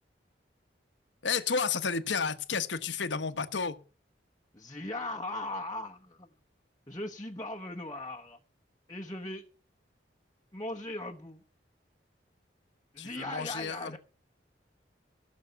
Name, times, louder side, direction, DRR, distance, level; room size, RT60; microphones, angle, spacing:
voice 1, 1.2-3.8 13.0-14.0, left 5 dB, 80° left, 1.1 m, -31 dB
voice 2, 4.5-6.3 6.9-8.4 8.9-9.4 10.5-11.4 12.9-14.0, left 2 dB, 20° left, 1.0 m, -38 dB
16.5 x 6.4 x 8.0 m
head